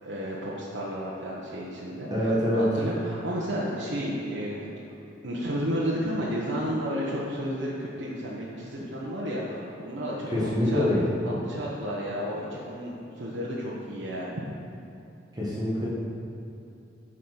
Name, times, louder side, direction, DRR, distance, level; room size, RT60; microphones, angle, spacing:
voice 1, 0.0-4.8 5.2-10.9 11.2-14.4, equal, 70° right, -6 dB, 1.1 m, -32 dB
voice 2, 2.1-2.7 10.3-11.1 15.3-15.9, left 1 dB, 20° right, -7 dB, 1.6 m, -25 dB
8.5 x 5.0 x 5.8 m, 2.8 s
head